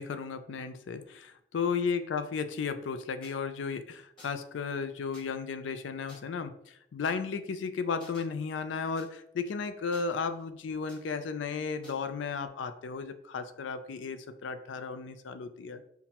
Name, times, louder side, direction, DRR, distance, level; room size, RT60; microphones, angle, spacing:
voice 1, 0.0-15.8, left 5 dB, 85° left, 10 dB, 0.4 m, -34 dB
sound 1, 3.2-3.3 4.2-4.5 5.1-5.2 6.1-6.2 7.0-7.1 8.0-8.2 9.0-9.1 9.9-10.4 10.9-11.0 11.8-12.0, left 1 dB, 30° left, 1.2 m, -53 dB
5.7 x 2.1 x 2.8 m, 0.75 s
head